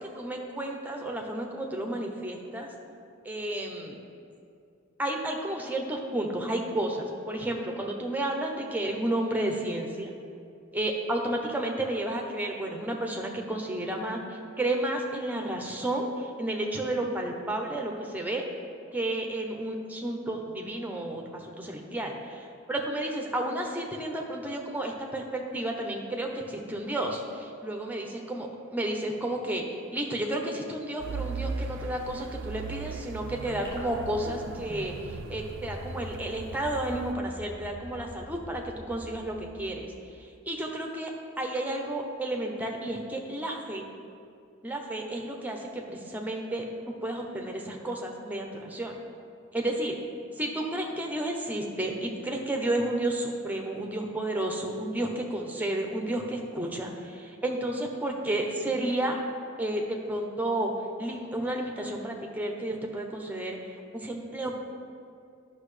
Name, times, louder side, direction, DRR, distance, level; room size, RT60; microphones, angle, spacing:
voice 1, 0.0-2.7 3.2-4.0 5.0-10.1 10.7-18.4 18.9-29.6 29.9-39.9 40.2-41.1 41.4-43.9 44.6-48.9 49.5-50.0 50.4-59.2 59.6-60.7 61.0-63.6 63.9-64.5, right 1 dB, 10° right, 1 dB, 0.7 m, -32 dB
sound 1, 31.0-37.1, right 4 dB, 60° right, 0.3 m, -38 dB
sound 2, 33.6-40.2, equal, 15° left, 2.1 m, -44 dB
12.0 x 6.0 x 3.2 m, 2.4 s
head